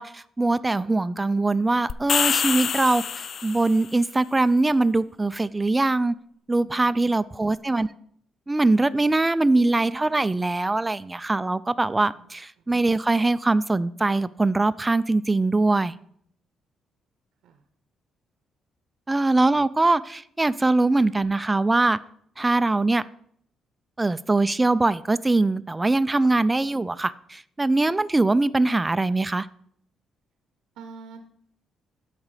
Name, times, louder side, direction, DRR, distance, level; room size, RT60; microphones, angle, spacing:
voice 1, 0.0-3.0 3.4-6.1 6.5-7.9 8.5-15.9 19.1-22.0 22.4-23.0 24.0-29.5, right 2 dB, 15° right, 16 dB, 0.4 m, -22 dB
sound 1, 1.9-3.8, left 7 dB, 55° left, 0.3 m, -25 dB
voice 2, 6.6-7.3 12.0-12.3 17.4-17.6 30.8-31.2, right 4 dB, 85° right, 8 dB, 0.8 m, -46 dB
13.0 x 5.1 x 4.9 m, 0.66 s
cardioid pair, 90°, 0 cm